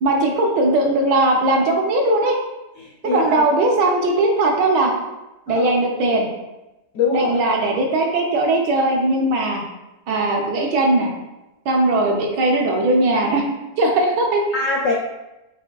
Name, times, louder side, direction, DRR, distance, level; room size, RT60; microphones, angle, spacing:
voice 1, 0.0-2.4 3.0-4.9 5.5-6.3 7.1-9.6 10.1-11.1 11.6-13.4 13.8-14.6, right 2 dB, 80° right, 1 dB, 1.3 m, -19 dB
voice 2, 2.8-3.5 5.5-5.7 6.9-7.3 14.5-14.9, left 4 dB, 75° left, -2 dB, 0.7 m, -23 dB
5.8 x 2.6 x 2.2 m, 0.99 s
omnidirectional pair, 1.9 m